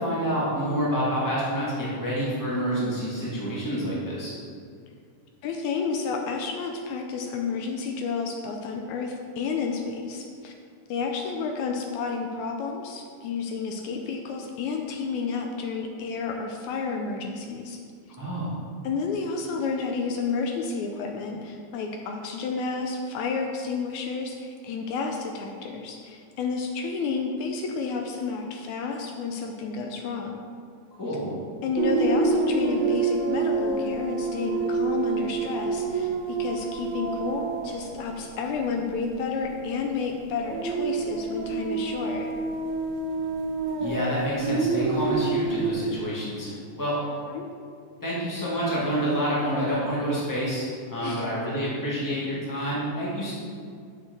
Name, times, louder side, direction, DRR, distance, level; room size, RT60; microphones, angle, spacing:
voice 1, 0.0-4.3 18.1-18.5 31.0-31.3 43.8-46.9 48.0-53.3, equal, 10° left, -7 dB, 1.6 m, -28 dB
voice 2, 5.4-10.5 10.9-17.8 18.8-30.4 31.6-42.3 47.0-47.5 51.0-51.3, left 5 dB, 80° left, 2 dB, 1.9 m, -31 dB
sound 1, 31.8-39.2 39.5-39.7 40.4-45.7, right 4 dB, 70° right, 2.0 m, -27 dB
6.8 x 5.7 x 6.7 m, 2.2 s
omnidirectional pair, 3.5 m